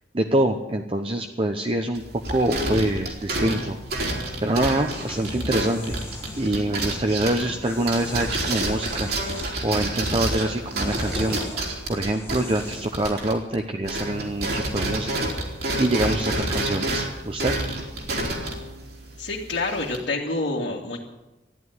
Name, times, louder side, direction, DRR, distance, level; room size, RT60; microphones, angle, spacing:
voice 1, 0.1-2.0 2.3-3.8 4.4-5.9 6.4-9.1 9.6-11.4 11.9-15.3 15.8-17.5, right 1 dB, 30° right, 4 dB, 0.9 m, -25 dB
sound 1, 1.9-13.6 13.8-20.0, right 1 dB, 60° right, 3.3 m, -29 dB
sound 2, 4.7-6.6 7.6-9.7 10.1-13.0, left 1 dB, 15° left, 1.5 m, -39 dB
voice 2, 19.2-21.0, left 2 dB, 90° left, -5 dB, 2.3 m, -27 dB
14.5 x 10.5 x 9.5 m, 1.0 s
head